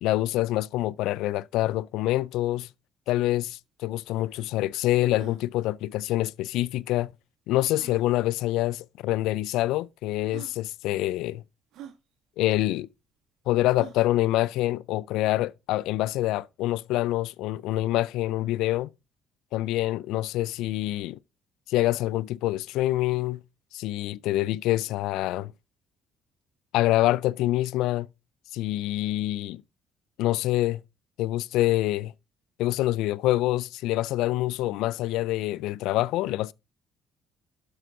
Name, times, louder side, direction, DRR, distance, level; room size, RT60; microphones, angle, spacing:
voice 1, 0.0-2.7 3.1-7.1 7.5-11.4 12.4-12.9 13.5-18.9 19.5-21.2 21.7-23.4 23.7-25.5 26.7-28.1 28.5-29.6 30.2-30.8 31.2-32.1 32.6-36.5, left 16 dB, 80° left, 0.4 m, -26 dB
sound 1, 3.5-3.6 3.8-3.9 4.4-4.5 5.0-5.4 6.7-6.8 7.7-8.1 9.0-9.1 9.9-10.0 10.3-10.6 11.7-12.0 13.7-14.1, right 10 dB, 70° right, 1.5 m, -45 dB
11.0 x 6.2 x 3.9 m
supercardioid pair, 75°, 0 cm